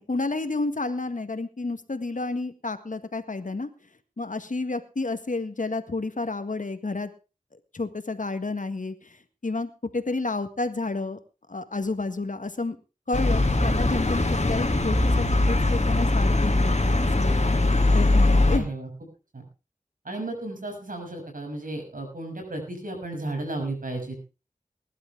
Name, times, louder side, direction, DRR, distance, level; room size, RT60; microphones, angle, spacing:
voice 1, 0.0-3.7 4.2-7.1 7.7-9.2 9.4-11.2 11.5-12.8 13.1-17.4 17.9-18.7, left 3 dB, 70° left, 10 dB, 1.8 m, -30 dB
sound 1, 13.1-18.6, left 2 dB, 55° left, 2.5 m, -21 dB
voice 2, 18.5-18.9 19.3-19.4 20.0-24.2, right 2 dB, 85° right, 2 dB, 6.7 m, -34 dB
21.0 x 11.5 x 3.5 m, 0.32 s
wide cardioid pair, 40°, 14 cm